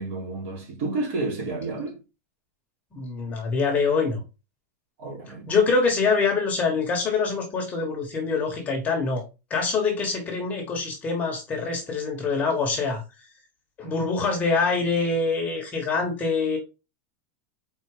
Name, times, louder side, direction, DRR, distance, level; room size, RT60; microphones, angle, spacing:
voice 1, 0.0-2.0 5.0-5.4, right 3 dB, 50° right, 3.2 m, -30 dB
voice 2, 2.9-4.2 5.5-9.2 9.5-13.0 13.8-16.6, left 4 dB, 15° left, 1.3 m, -25 dB
4.9 x 4.0 x 4.9 m
supercardioid pair, 175°, 9 cm